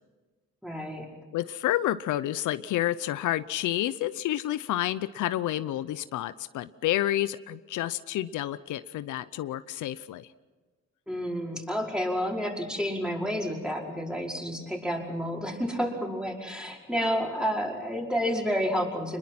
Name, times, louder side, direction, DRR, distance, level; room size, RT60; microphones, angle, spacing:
voice 1, 0.6-1.1 11.1-19.2, equal, 5° right, -1 dB, 5.3 m, -30 dB
voice 2, 1.3-10.3, left 13 dB, 80° left, 14 dB, 0.7 m, -29 dB
26.0 x 21.5 x 5.9 m, 1.3 s
cardioid pair, 90°, 30 cm